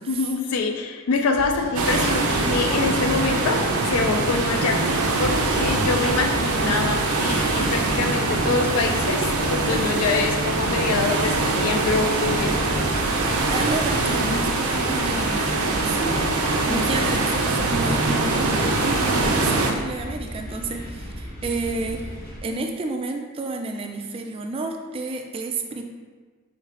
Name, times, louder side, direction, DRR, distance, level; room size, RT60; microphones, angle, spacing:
voice 1, 0.1-12.6 14.0-14.3 16.7-16.8, left 4 dB, 85° left, 4 dB, 0.4 m, -25 dB
sound 1, 1.3-17.6, left 1 dB, 70° left, 1.3 m, -38 dB
sound 2, 1.7-19.7, right 3 dB, 85° right, 0.5 m, -23 dB
sound 3, 5.4-22.4, equal, 45° left, 0.9 m, -37 dB
voice 2, 13.5-25.8, right 3 dB, 25° right, 4 dB, 0.3 m, -30 dB
3.2 x 3.2 x 3.6 m, 1.4 s
head